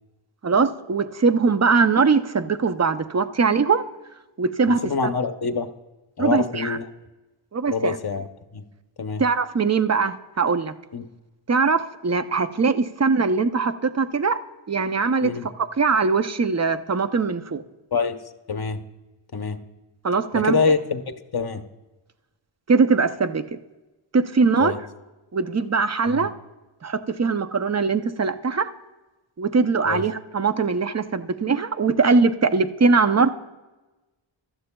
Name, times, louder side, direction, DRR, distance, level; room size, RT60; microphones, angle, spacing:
voice 1, 0.4-3.8 4.4-4.8 6.2-6.8 7.5-8.0 9.2-10.7 11.5-14.4 14.7-17.6 20.0-20.6 22.7-23.4 24.1-24.7 25.3-26.3 26.8-28.7 29.4-33.4, right 4 dB, 35° right, 10 dB, 0.6 m, -21 dB
voice 2, 4.7-5.7 6.2-6.8 7.7-8.3 8.5-8.6 9.0-9.2 10.9-11.0 15.2-15.5 17.9-18.2 18.5-18.8 19.3-19.6 20.3-21.6 24.6-24.8 26.1-26.3 29.8-30.0, left 5 dB, 50° left, 8 dB, 0.8 m, -25 dB
15.5 x 12.5 x 2.2 m, 1.1 s
wide cardioid pair, 75°, 49 cm